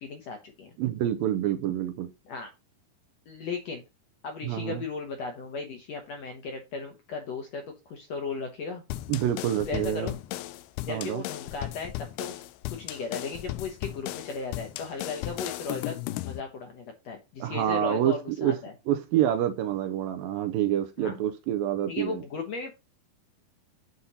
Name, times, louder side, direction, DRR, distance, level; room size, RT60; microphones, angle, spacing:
voice 1, 0.0-0.7 2.2-2.5 3.3-3.8 4.2-8.8 9.7-10.2 10.8-11.9 12.2-18.7 21.0-21.1 21.9-22.7, left 4 dB, 65° left, 1.7 m, -36 dB
voice 2, 0.8-2.1 4.4-4.8 9.1-10.1 10.9-11.2 17.4-18.6 18.9-22.2, right 11 dB, 80° right, 2.2 m, -27 dB
sound 1, 8.9-16.4, left 15 dB, 85° left, 2.5 m, -36 dB
7.9 x 4.3 x 5.4 m
omnidirectional pair, 4.4 m